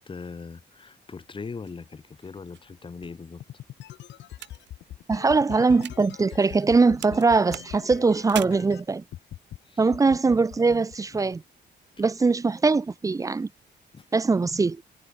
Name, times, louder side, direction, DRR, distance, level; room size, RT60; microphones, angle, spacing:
voice 1, 0.0-3.4 9.6-9.9 12.0-12.1 13.9-14.1, left 5 dB, 30° left, 6.3 m, -40 dB
sound 1, 1.7-6.7 7.0-8.4, right 12 dB, 80° right, 2.4 m, -42 dB
sound 2, 3.4-8.8 9.1-9.6 9.9-11.4, left 12 dB, 85° left, 2.1 m, -42 dB
voice 2, 5.1-9.0 9.8-11.4 12.0-13.5 14.1-14.8, right 4 dB, 20° right, 0.6 m, -22 dB
cardioid pair, 150°, 18 cm